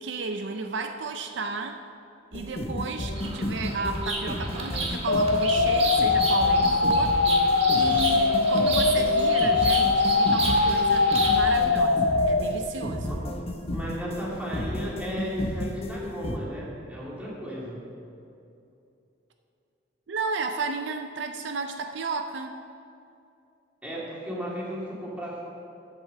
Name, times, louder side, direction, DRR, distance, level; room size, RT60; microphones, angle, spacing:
voice 1, 0.0-1.8 2.3-13.2 20.1-22.6, right 3 dB, 65° right, 6 dB, 0.5 m, -33 dB
sound 1, 2.3-16.4, left 1 dB, 35° left, 0.8 m, -33 dB
Bird vocalization bird call bird song, 3.1-11.6, right 3 dB, 35° right, 1.4 m, -33 dB
sound 2, 5.1-12.4, left 3 dB, 85° left, 0.6 m, -22 dB
voice 2, 13.7-17.8 23.8-25.4, equal, 10° right, -6 dB, 2.5 m, -35 dB
8.1 x 8.1 x 6.6 m, 2.7 s
head